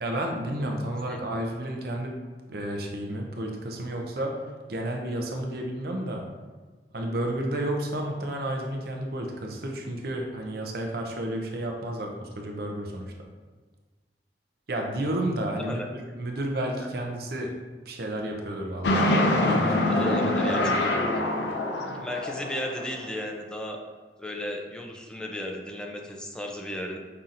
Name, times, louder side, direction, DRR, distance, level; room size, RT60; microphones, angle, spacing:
voice 1, 0.0-2.2 2.5-4.4 4.7-6.2 6.9-13.1 14.7-17.5 17.9-20.7, right 1 dB, 60° right, 1 dB, 0.6 m, -31 dB
sound 1, 18.8-23.1, left 1 dB, 75° left, 0.4 m, -25 dB
voice 2, 20.0-20.8 22.0-23.8 24.2-27.0, left 1 dB, 5° left, 1 dB, 0.3 m, -34 dB
5.4 x 2.7 x 2.5 m, 1.3 s
head